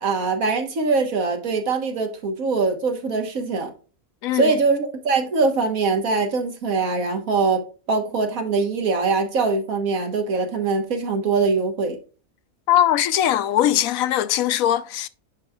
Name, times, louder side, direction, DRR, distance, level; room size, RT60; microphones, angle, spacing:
voice 1, 0.0-3.7 4.3-7.6 7.9-12.0, right 4 dB, 80° right, 1.7 m, -22 dB
voice 2, 12.7-15.1, left 12 dB, 80° left, 1.0 m, -20 dB
10.0 x 5.0 x 2.3 m
omnidirectional pair, 1.4 m